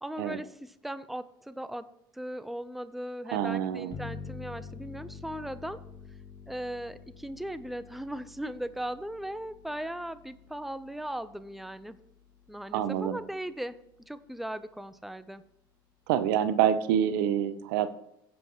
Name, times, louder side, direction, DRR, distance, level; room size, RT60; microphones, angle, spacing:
voice 1, 0.0-1.9 2.1-5.8 6.5-12.0 12.5-13.8 14.1-15.4, right 1 dB, ahead, 14 dB, 0.7 m, -38 dB
voice 2, 3.3-4.0 12.7-13.2 16.1-17.9, right 10 dB, 70° right, 13 dB, 0.8 m, -27 dB
sound 1, 3.9-13.2, left 5 dB, 40° left, 1.2 m, -48 dB
16.0 x 7.8 x 3.1 m, 0.77 s
hypercardioid pair, 70°, 12 cm